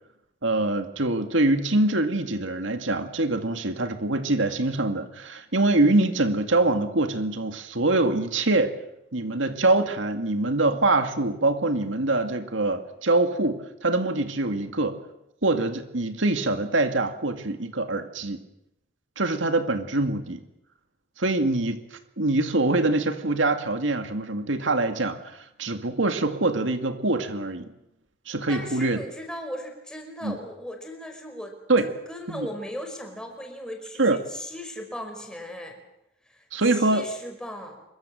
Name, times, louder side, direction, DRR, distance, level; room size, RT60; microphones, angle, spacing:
voice 1, 0.4-8.7 9.1-15.0 15.4-18.4 19.2-20.4 21.2-27.7 28.3-29.0 30.2-30.4 31.7-31.9 32.3-32.5 34.0-34.2 36.5-37.1, right 2 dB, 85° right, 7 dB, 2.1 m, -24 dB
voice 2, 28.5-35.8 36.3-37.8, equal, 5° left, 3 dB, 5.3 m, -38 dB
26.0 x 23.0 x 7.7 m, 0.84 s
head